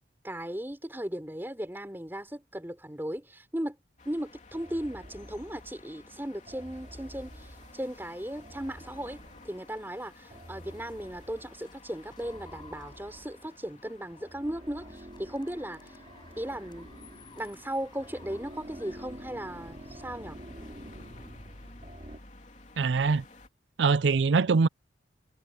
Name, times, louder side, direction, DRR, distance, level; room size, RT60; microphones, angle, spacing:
voice 1, 0.2-3.8 4.1-16.0 16.4-16.9 17.4-20.4, right 1 dB, 10° right, 3.7 m, -37 dB
sound 1, 4.0-23.5, left 2 dB, 40° left, 3.3 m, -54 dB
sound 2, 4.5-5.9 6.5-9.7 10.3-11.7 12.2-13.6 14.1-22.2, equal, 35° right, 3.8 m, -48 dB
sound 3, 7.4-21.2, left 4 dB, 25° left, 7.4 m, -59 dB
voice 2, 22.8-23.2 23.8-24.7, right 4 dB, 85° right, 0.5 m, -23 dB
head